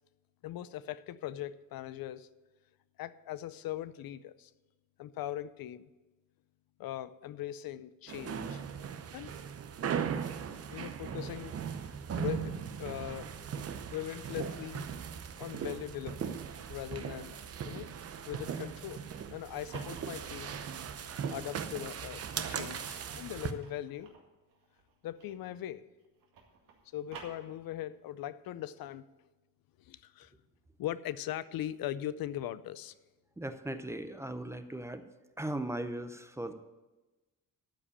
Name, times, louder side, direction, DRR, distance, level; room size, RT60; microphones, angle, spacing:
voice 1, 0.4-2.3 3.0-4.5 5.0-5.9 6.8-8.6 9.1-9.3 10.7-11.6 12.1-13.3 13.9-14.9 15.4-16.4 16.7-17.4 17.6-17.9 18.3-19.0 19.3-20.6 21.3-24.1 25.0-25.8 26.9-29.1 29.8-30.3 30.8-32.9, left 12 dB, 90° left, 16 dB, 0.6 m, -40 dB
sound 1, 8.1-23.5, right 7 dB, 45° right, 0.7 m, -38 dB
sound 2, 19.5-21.4 22.0-25.7 26.0-28.0, right 5 dB, 75° right, 2.1 m, -54 dB
voice 2, 33.4-35.0 35.4-36.5, right 1 dB, 10° right, 9 dB, 0.5 m, -38 dB
13.0 x 5.0 x 8.5 m, 1.1 s
wide cardioid pair, 165°, 34 cm